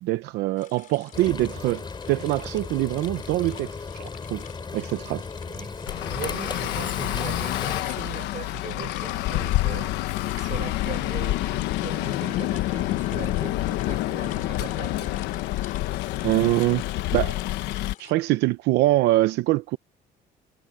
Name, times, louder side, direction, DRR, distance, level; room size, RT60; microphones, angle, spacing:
voice 1, 0.0-3.7 4.0-4.4 4.7-5.2 16.2-16.8 17.1-17.4 18.0-19.8, right 17 dB, 85° right, 0.7 m, -24 dB
sound 1, 0.6-18.1, left 9 dB, 55° left, 3.8 m, -47 dB
Frying (food), 1.1-7.8, left 4 dB, 25° left, 7.9 m, -36 dB
voice 2, 5.5-10.0 10.4-15.2, right 8 dB, 50° right, 4.8 m, -39 dB
Traffic noise roadway noise, 5.9-17.9, left 16 dB, 90° left, 1.2 m, -28 dB
cardioid pair, 110°, 17 cm